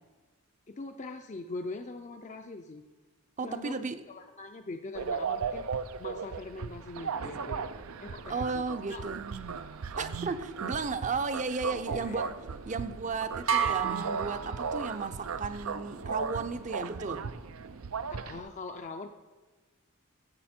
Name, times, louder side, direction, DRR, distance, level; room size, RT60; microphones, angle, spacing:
voice 1, 0.7-2.8 3.4-3.7 4.1-5.6 6.0-7.6 8.0-9.1 9.9-10.0 11.8-12.3 18.1-19.1, left 3 dB, 35° left, 5 dB, 0.5 m, -42 dB
voice 2, 3.4-4.0 8.3-9.2 10.0-12.3 12.7-17.3, right 4 dB, 35° right, 10 dB, 0.6 m, -34 dB
sound 1, 4.9-18.4, right 5 dB, 80° right, 0.5 m, -37 dB
sound 2, 13.5-15.3, right 7 dB, 65° right, 1.0 m, -31 dB
16.0 x 7.1 x 4.4 m, 1.3 s
head